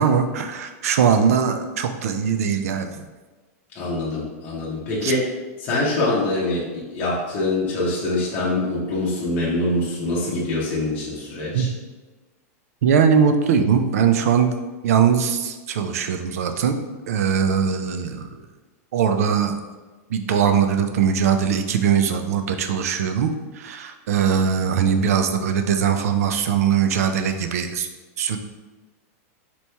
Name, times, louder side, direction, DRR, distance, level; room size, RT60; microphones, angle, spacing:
voice 1, 0.0-3.0 5.0-5.1 11.5-11.7 12.8-14.5 14.8-16.8 17.1-18.4 18.9-19.5 20.1-27.9 28.2-28.4, right 7 dB, 70° right, 7 dB, 0.4 m, -21 dB
voice 2, 3.7-5.3 5.6-11.7, left 2 dB, 20° left, -7 dB, 0.7 m, -24 dB
4.2 x 3.0 x 3.3 m, 1.3 s
supercardioid pair, 180°, 8 cm